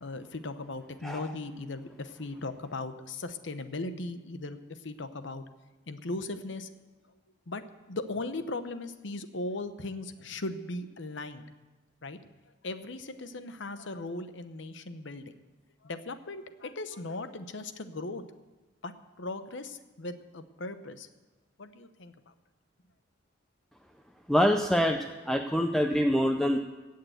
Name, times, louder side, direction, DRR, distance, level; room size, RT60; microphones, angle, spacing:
voice 1, 0.0-5.4 5.9-6.7 7.5-7.6 7.9-11.4 12.0-12.2 12.6-15.3 15.8-18.2 18.8-21.1 21.6-22.3, left 2 dB, 65° left, 10 dB, 0.9 m, -38 dB
voice 2, 24.3-26.6, equal, ahead, 4 dB, 0.5 m, -25 dB
17.0 x 6.7 x 7.9 m, 1.2 s
head